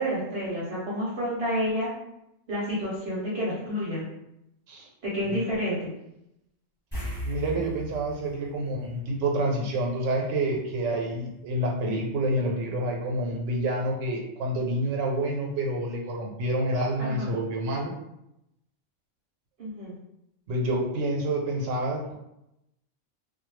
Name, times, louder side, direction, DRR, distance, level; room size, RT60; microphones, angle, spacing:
voice 1, 0.0-1.9 2.5-4.1 5.0-5.9 17.0-17.3 19.6-19.9, equal, 60° right, -6 dB, 0.9 m, -29 dB
sound 1, 6.9-9.7 10.0-10.2 13.1-13.2 13.5-13.6, equal, 10° left, 0.9 m, -37 dB
voice 2, 7.2-17.9 20.5-22.1, right 1 dB, 80° right, 0 dB, 1.0 m, -28 dB
2.3 x 2.1 x 3.1 m, 0.84 s
omnidirectional pair, 1.3 m